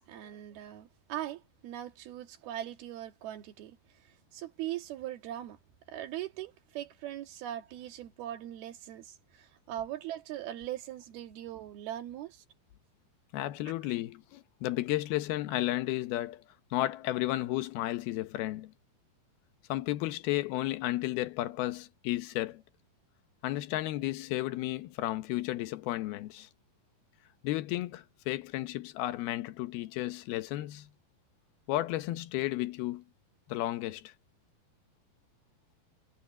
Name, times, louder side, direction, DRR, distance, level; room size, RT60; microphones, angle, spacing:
voice 1, 0.1-3.8 4.3-5.6 5.9-12.4, right 12 dB, 75° right, 3.6 m, -40 dB
voice 2, 13.3-16.4 16.7-18.7 19.7-22.6 23.4-26.5 27.4-30.9 31.7-33.0 33.5-34.1, left 16 dB, 80° left, 2.8 m, -33 dB
omnidirectional pair, 4.5 m